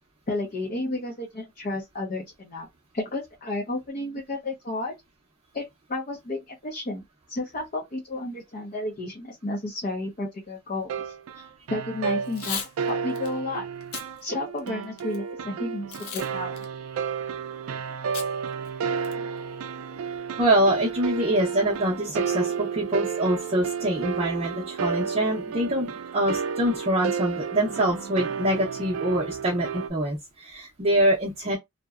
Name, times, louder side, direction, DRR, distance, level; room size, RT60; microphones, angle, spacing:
voice 1, 0.3-2.7 2.9-4.9 5.5-13.6 14.2-16.6, left 2 dB, 40° left, 0.6 m, -32 dB
sound 1, 10.9-29.9, right 6 dB, 75° right, 0.3 m, -32 dB
Packing tape duct tape / Tearing, 12.2-12.7 13.2-13.3 13.8-14.1 14.6-15.2 15.9-16.3 16.6-16.7 18.1-18.3 18.7-18.8 19.0-19.4, left 7 dB, 80° left, 0.6 m, -35 dB
voice 2, 20.4-31.6, right 1 dB, 30° right, 0.6 m, -25 dB
2.7 x 2.1 x 2.3 m
head